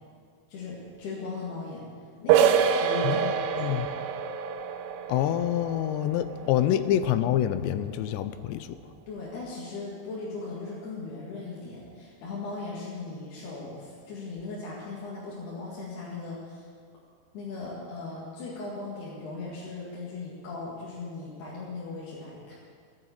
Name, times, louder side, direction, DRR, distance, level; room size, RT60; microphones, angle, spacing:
voice 1, 0.5-1.8 2.2-3.9 6.4-6.9 9.1-16.7 17.3-22.5, left 3 dB, 65° left, -6 dB, 3.9 m, -38 dB
sound 1, 2.3-7.8, right 8 dB, 85° right, 2.2 m, -27 dB
voice 2, 3.0-3.9 5.1-8.8, left 11 dB, 85° left, 12 dB, 2.8 m, -27 dB
15.0 x 8.8 x 8.2 m, 2.1 s
omnidirectional pair, 5.0 m